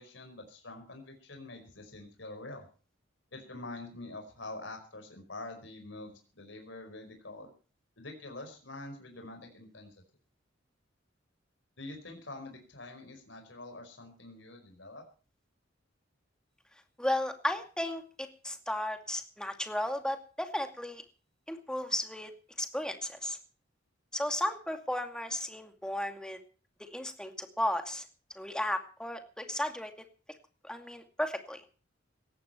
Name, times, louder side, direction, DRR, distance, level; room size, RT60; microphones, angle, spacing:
voice 1, 0.0-2.7 3.3-7.5 8.0-9.9 11.8-15.0, left 2 dB, 70° left, 4 dB, 4.9 m, -45 dB
voice 2, 17.0-21.0 21.5-22.3 22.6-23.4 24.1-26.4 26.8-28.0 28.4-29.9 30.6-31.6, left 1 dB, 5° left, 6 dB, 2.4 m, -34 dB
18.5 x 14.0 x 4.4 m, 0.37 s
head